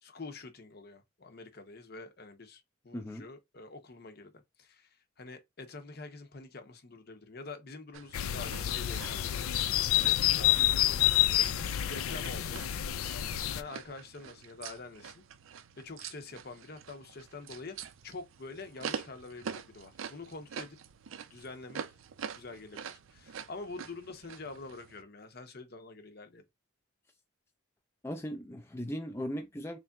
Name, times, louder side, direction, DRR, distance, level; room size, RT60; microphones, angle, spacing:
voice 1, 0.0-4.3 4.6-11.0 11.3-12.6 13.5-15.2 15.8-20.8 21.3-21.8 22.3-26.4, left 3 dB, 50° left, 0.7 m, -46 dB
voice 2, 2.9-3.3 28.0-29.8, equal, 10° left, 0.4 m, -38 dB
sound 1, 7.9-25.0, right 7 dB, 75° right, 0.4 m, -46 dB
sound 2, 8.1-13.6, left 13 dB, 90° left, 0.4 m, -28 dB
3.8 x 3.3 x 2.3 m
head